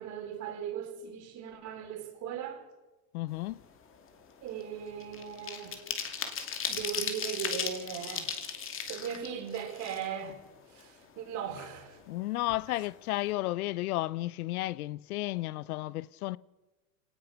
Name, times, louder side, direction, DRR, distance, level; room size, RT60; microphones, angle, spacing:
voice 1, 0.0-2.6 4.4-5.8 6.7-8.4 8.9-12.0, right 8 dB, 40° right, 4.9 m, -38 dB
voice 2, 3.1-3.6 12.1-16.4, left 17 dB, 85° left, 0.8 m, -33 dB
sound 1, 3.4-3.6 4.0-10.4 10.8-10.9 11.2-12.2 12.5-12.6 12.9-13.2, left 7 dB, 30° left, 2.6 m, -37 dB
24.5 x 18.0 x 5.9 m
supercardioid pair, 135°, 43 cm